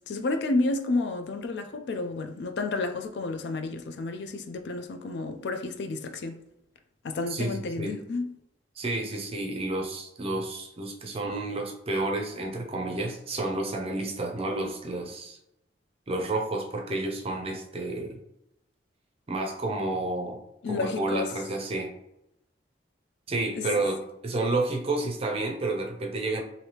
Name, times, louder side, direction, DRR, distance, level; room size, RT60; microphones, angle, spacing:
voice 1, 0.1-6.4 7.0-8.3 20.6-21.3 23.6-23.7, left 3 dB, 65° left, 0.4 m, -31 dB
voice 2, 7.3-8.0 8.8-15.4 16.1-18.2 19.3-20.4 20.7-21.9 23.3-26.4, right 2 dB, 35° right, 0.5 m, -30 dB
3.2 x 2.6 x 2.8 m
head